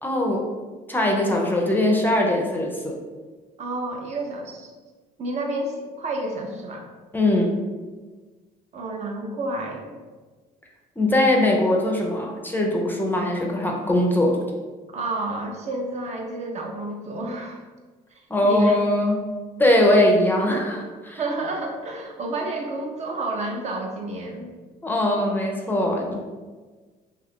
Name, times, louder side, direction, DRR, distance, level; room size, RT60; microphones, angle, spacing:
voice 1, 0.0-0.5 0.9-3.0 7.1-7.6 11.0-14.4 18.3-19.2 19.6-21.2 24.8-26.1, left 1 dB, 10° left, 0 dB, 0.4 m, -21 dB
voice 2, 3.6-4.7 5.2-6.9 8.7-9.9 14.9-17.6 18.4-18.8 21.2-24.5, right 2 dB, 40° right, 2 dB, 0.5 m, -30 dB
2.7 x 2.4 x 3.5 m, 1.4 s
cardioid pair, 110°, 17 cm